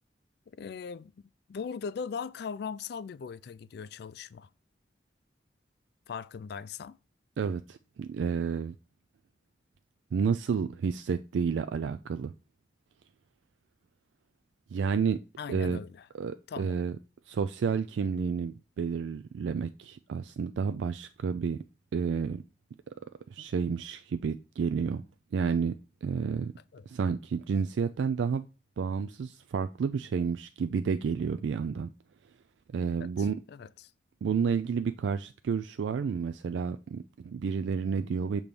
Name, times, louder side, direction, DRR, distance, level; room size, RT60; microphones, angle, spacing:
voice 1, 0.5-1.1 1.5-4.5 6.1-7.0 15.4-16.1 16.5-16.8 26.7-26.9 33.0-33.9, left 6 dB, 60° left, 0.3 m, -39 dB
voice 2, 7.4-8.7 10.1-12.3 14.7-15.2 15.5-15.8 16.1-17.0 17.3-21.6 21.9-22.4 23.3-25.0 25.3-25.8 26.0-26.5 26.9-28.4 28.8-31.9 32.7-33.4 34.2-38.4, right 6 dB, 75° right, 0.3 m, -30 dB
6.7 x 3.0 x 5.3 m
head